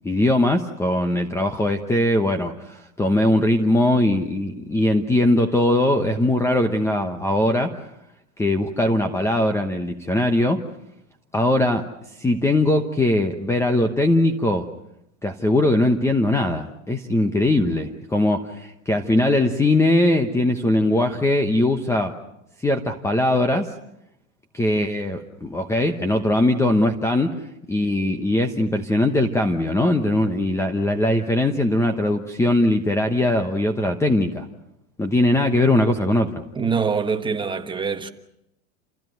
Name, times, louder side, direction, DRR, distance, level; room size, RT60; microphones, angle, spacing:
voice 1, 0.0-7.7 8.4-10.6 11.3-11.9 12.2-14.7 15.2-22.2 22.6-23.7 24.5-27.3 27.7-34.5 35.0-36.4, left 1 dB, 5° left, 1.0 m, -20 dB
voice 2, 36.5-38.1, right 5 dB, 10° right, 1.3 m, -24 dB
29.0 x 15.5 x 9.2 m
supercardioid pair, 150°, 41 cm